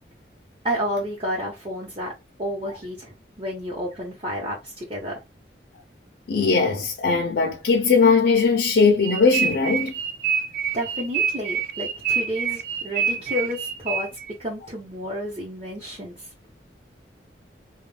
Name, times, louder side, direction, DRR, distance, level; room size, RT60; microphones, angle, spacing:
voice 1, 0.6-2.1 2.4-5.1 10.7-14.1 14.4-16.2, equal, 30° right, 0.9 m, -30 dB
voice 2, 6.3-9.9, left 4 dB, 70° left, 0.5 m, -19 dB
sound 1, 9.0-14.3, right 7 dB, 50° right, 0.4 m, -26 dB
2.4 x 2.2 x 3.1 m
head